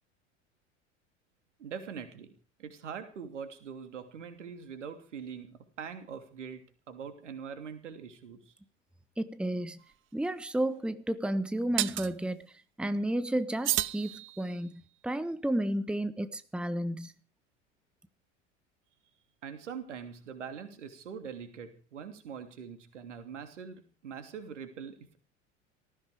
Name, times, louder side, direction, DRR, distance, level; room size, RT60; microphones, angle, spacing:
voice 1, 1.6-2.3 2.6-8.5 19.4-25.2, right 7 dB, 70° right, 9 dB, 2.9 m, -43 dB
voice 2, 9.2-9.8 10.1-17.1, right 1 dB, 5° right, 13 dB, 1.3 m, -32 dB
sound 1, 9.8-9.9 11.8-12.1 13.6-14.7, right 14 dB, 35° right, 0.9 m, -32 dB
19.0 x 15.0 x 5.1 m, 0.38 s
figure-of-eight pair, 75°, 37 cm